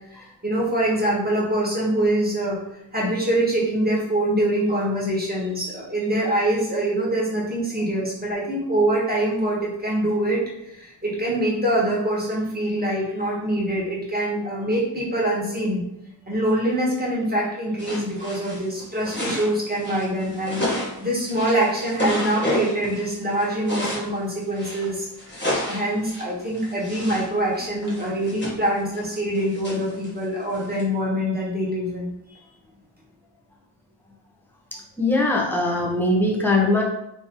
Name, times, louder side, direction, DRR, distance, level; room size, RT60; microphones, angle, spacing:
voice 1, 0.1-2.6 2.9-10.4 10.7-15.8 16.3-20.6 21.0-32.1, right 1 dB, 20° right, -5 dB, 1.4 m, -24 dB
sound 1, 17.8-24.1 24.5-27.3 27.6-30.8, left 1 dB, 25° left, 1.5 m, -31 dB
voice 2, 34.7-36.8, left 2 dB, 5° left, -3 dB, 0.9 m, -21 dB
3.7 x 3.0 x 3.0 m, 0.82 s
wide cardioid pair, 55°, 46 cm